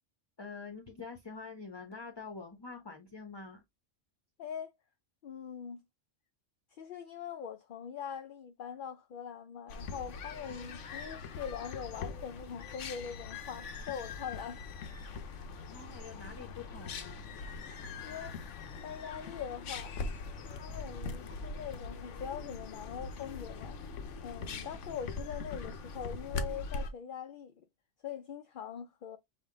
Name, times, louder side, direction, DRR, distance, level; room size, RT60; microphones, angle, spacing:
voice 1, 0.4-3.6 15.7-17.3, left 4 dB, 25° left, 0.7 m, -46 dB
voice 2, 4.4-4.7 5.2-5.8 6.7-14.6 18.0-18.4 18.8-20.0 20.5-23.8 24.2-27.6 28.0-29.2, left 8 dB, 60° left, 0.6 m, -42 dB
sound 1, 9.7-26.9, left 4 dB, 85° left, 1.1 m, -42 dB
5.7 x 2.5 x 3.7 m
omnidirectional pair, 1.2 m